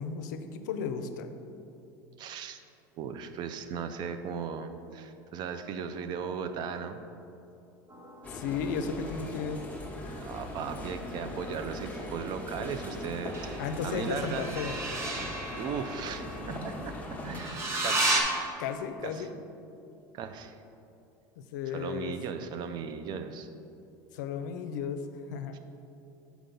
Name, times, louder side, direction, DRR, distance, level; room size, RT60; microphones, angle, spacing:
voice 1, 0.0-1.3 8.3-9.7 13.6-14.8 18.6-19.3 21.4-22.1 24.1-25.6, left 6 dB, 85° left, 8 dB, 0.5 m, -34 dB
voice 2, 2.2-2.6 3.0-7.0 10.2-14.5 15.6-17.0 17.2-18.1 19.0-19.3 20.1-20.6 21.7-23.5, right 6 dB, 50° right, 9 dB, 0.5 m, -37 dB
sound 1, 7.9-11.0 13.3-18.2, right 2 dB, 30° right, 1.0 m, -35 dB
sound 2, 8.2-17.4, left 1 dB, 15° left, 1.0 m, -40 dB
6.6 x 4.7 x 3.9 m, 2.7 s
supercardioid pair, 105°, 10 cm